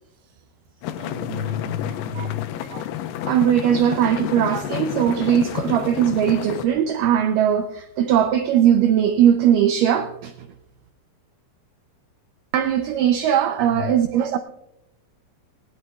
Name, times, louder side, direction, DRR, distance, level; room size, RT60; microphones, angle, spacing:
voice 1, 0.1-0.4 1.0-2.5 13.6-13.8, left 6 dB, 55° right, 0.6 m, -31 dB
sound 1, 0.8-6.7, left 11 dB, 85° left, 2.7 m, -30 dB
voice 2, 3.3-10.3 12.5-14.4, right 9 dB, 85° right, 1.9 m, -19 dB
19.0 x 19.0 x 2.3 m
omnidirectional pair, 4.6 m